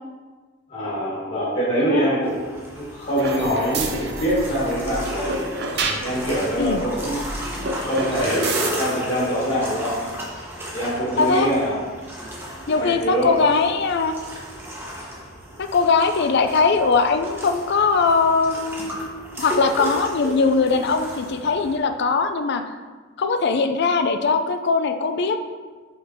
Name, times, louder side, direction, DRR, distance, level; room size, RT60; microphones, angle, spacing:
voice 1, 0.7-2.4 2.7-5.5 6.0-7.2 7.8-10.1 10.7-11.7 12.7-13.3, equal, 40° left, -9 dB, 1.8 m, -24 dB
voice 2, 1.8-2.1 6.6-6.8 11.2-11.5 12.7-14.1 15.6-22.6 23.2-25.4, left 4 dB, 55° left, 8 dB, 0.4 m, -20 dB
sound 1, 2.2-21.8, equal, 10° right, 1.0 m, -34 dB
sound 2, 3.2-8.8, right 3 dB, 55° right, 0.6 m, -30 dB
5.0 x 4.4 x 4.5 m, 1.4 s
head